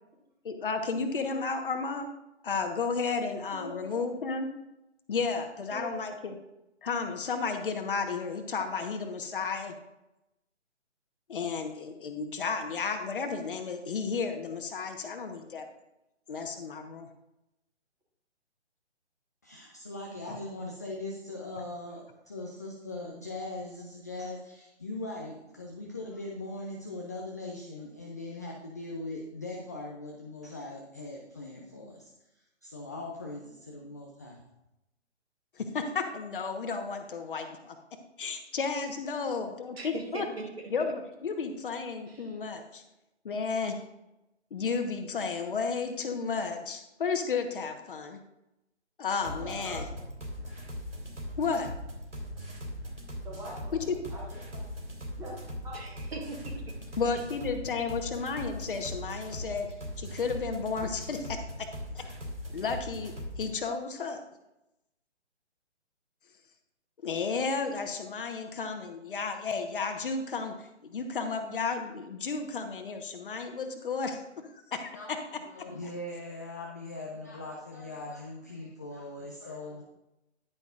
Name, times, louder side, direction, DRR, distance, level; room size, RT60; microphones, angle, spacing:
voice 1, 0.4-2.1 2.4-4.5 5.1-6.3 6.8-9.7 11.3-15.7 16.3-17.1 20.3-20.4 35.6-37.8 38.2-40.3 40.7-42.8 43.2-43.7 44.5-48.2 49.0-49.9 51.4-51.7 53.9-54.0 57.0-59.7 60.0-61.7 61.9-62.0 62.5-64.2 67.0-75.2, left 5 dB, 50° left, 6 dB, 1.3 m, -33 dB
voice 2, 3.5-4.0 5.7-6.1 49.4-49.9 53.2-55.4 55.6-55.9, right 1 dB, 10° right, -4 dB, 2.3 m, -43 dB
voice 3, 19.4-32.1 32.6-34.5 74.9-75.1 75.5-79.8, left 2 dB, 15° left, -2 dB, 0.4 m, -40 dB
voice 4, 39.8-40.7 42.1-42.4 55.7-57.0, right 3 dB, 60° right, 1 dB, 2.4 m, -41 dB
sound 1, 49.2-63.5, equal, 85° right, 3.5 m, -40 dB
10.5 x 9.7 x 2.5 m, 0.90 s
figure-of-eight pair, 140°, 35 cm